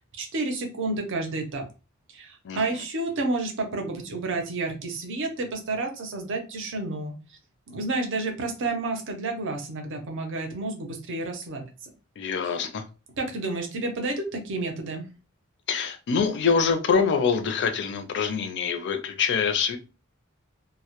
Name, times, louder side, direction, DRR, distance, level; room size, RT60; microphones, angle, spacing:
voice 1, 0.2-1.7 2.1-7.1 7.7-11.9 13.2-15.1, right 2 dB, 60° right, 4 dB, 0.6 m, -30 dB
voice 2, 2.4-2.8 12.2-12.8 15.7-19.8, left 6 dB, 55° left, 7 dB, 0.4 m, -25 dB
2.1 x 2.1 x 2.8 m, 0.32 s
head